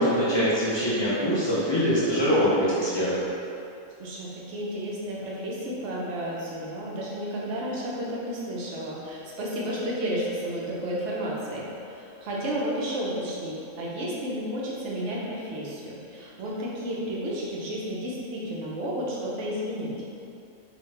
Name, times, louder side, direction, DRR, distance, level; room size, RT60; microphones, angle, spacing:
voice 1, 0.0-3.2, equal, 35° left, -10 dB, 0.4 m, -23 dB
voice 2, 4.0-19.9, equal, 60° right, -5 dB, 1.0 m, -32 dB
4.0 x 2.4 x 3.1 m, 2.6 s
omnidirectional pair, 1.4 m